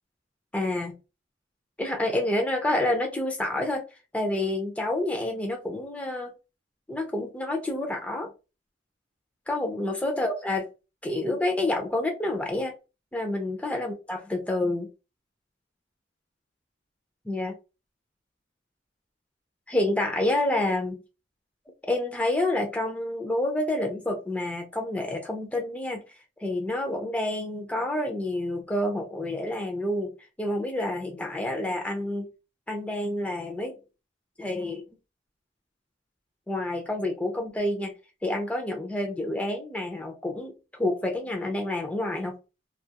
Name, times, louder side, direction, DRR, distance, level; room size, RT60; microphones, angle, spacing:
voice 1, 0.5-0.9 1.8-3.8 4.1-6.3 6.9-8.3 9.5-10.7 11.0-12.7 13.1-14.9 17.3-17.6 19.7-21.0 21.8-26.0 26.4-30.1 30.4-32.3 32.7-33.7 34.4-34.8 36.5-37.9 38.2-42.4, left 1 dB, 10° left, 2 dB, 0.4 m, -28 dB
2.4 x 2.3 x 2.8 m, 0.29 s
head